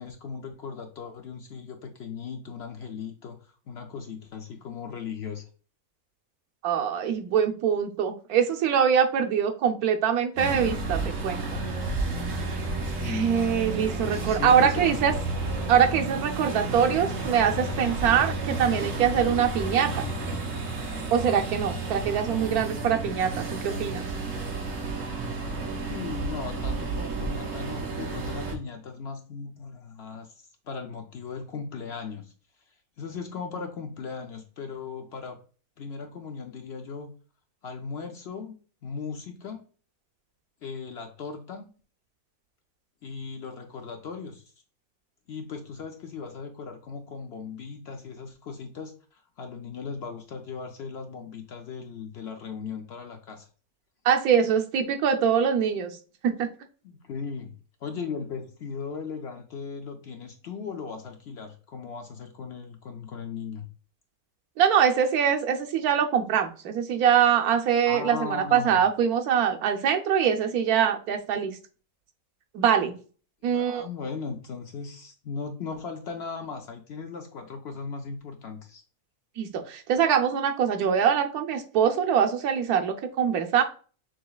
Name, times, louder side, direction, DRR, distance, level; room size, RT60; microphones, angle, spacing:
voice 1, 0.0-5.5 12.9-13.3 14.0-15.1 25.9-32.3 33.0-35.4 35.8-37.1 37.6-38.6 38.8-39.7 40.6-41.7 43.0-44.4 45.3-53.5 56.8-57.5 57.8-63.7 67.8-68.8 73.4-78.8, left 5 dB, 60° left, 4 dB, 0.7 m, -37 dB
voice 2, 6.6-11.6 13.0-15.1 15.7-20.0 21.1-24.1 54.0-55.9 56.2-56.5 64.6-71.6 72.5-72.9 73.4-73.9 79.4-83.6, right 8 dB, 85° right, 5 dB, 1.2 m, -23 dB
sound 1, 10.4-28.5, right 3 dB, 65° right, 1.3 m, -31 dB
6.3 x 2.9 x 2.3 m, 0.39 s
omnidirectional pair, 1.5 m